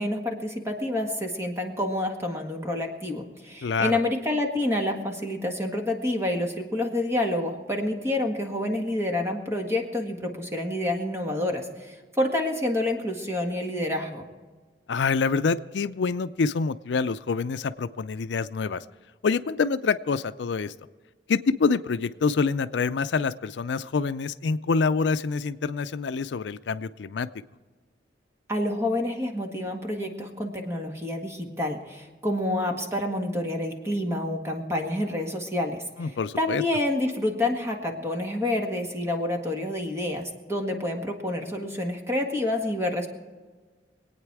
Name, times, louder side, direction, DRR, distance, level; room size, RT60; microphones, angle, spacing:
voice 1, 0.0-14.3 28.5-43.1, left 1 dB, 15° right, 2 dB, 1.7 m, -28 dB
voice 2, 3.6-4.0 14.9-18.8 19.2-20.7 21.3-27.3 36.0-36.6, left 4 dB, 80° left, 13 dB, 0.4 m, -26 dB
23.5 x 9.0 x 4.7 m, 1.4 s
head